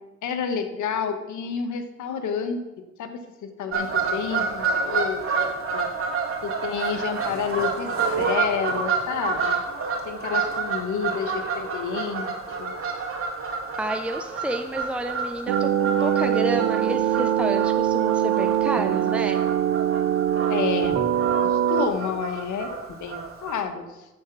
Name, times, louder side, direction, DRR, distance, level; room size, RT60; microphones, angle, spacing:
voice 1, 0.2-2.6 3.0-5.5 5.7-5.9 6.4-9.6 10.0-12.3 12.6-12.7 20.5-21.0 21.4-24.1, left 6 dB, 75° left, 8 dB, 1.3 m, -30 dB
Fowl / Bird vocalization bird call bird song, 3.7-23.6, right 5 dB, 45° right, 2.7 m, -29 dB
voice 2, 13.8-19.4, right 1 dB, 5° right, 6 dB, 0.6 m, -30 dB
sound 1, 15.5-21.9, right 10 dB, 65° right, 0.6 m, -22 dB
8.5 x 7.9 x 6.0 m, 1.0 s
cardioid pair, 90°, 30 cm